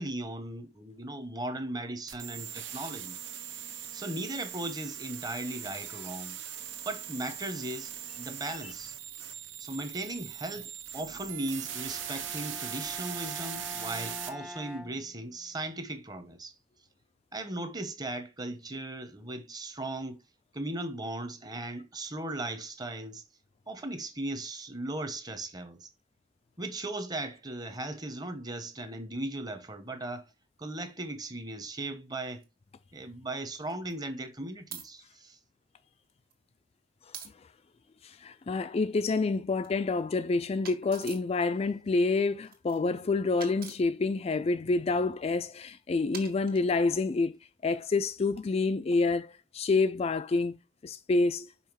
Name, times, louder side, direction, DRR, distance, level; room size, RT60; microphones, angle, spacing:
voice 1, 0.0-3.2 3.9-6.4 6.8-8.9 9.6-16.5 17.3-20.2 20.5-23.2 23.7-25.9 26.6-30.3 30.6-32.4 32.9-35.4, right 2 dB, 20° right, 0.9 m, -37 dB
sound 1, 2.1-14.3, right 10 dB, 80° right, 1.0 m, -40 dB
Bowed string instrument, 11.6-15.7, left 1 dB, 5° right, 0.7 m, -46 dB
sound 2, 32.4-32.5 33.6-33.9 34.7-34.9 36.0-36.3 37.1-37.3 38.8-39.7 40.6-41.3 42.4-42.9 43.4-43.8 45.1-45.4 46.1-47.0, right 7 dB, 50° right, 1.7 m, -45 dB
voice 2, 38.0-50.6 50.8-51.5, left 3 dB, 30° left, 0.3 m, -28 dB
5.6 x 4.8 x 4.6 m
head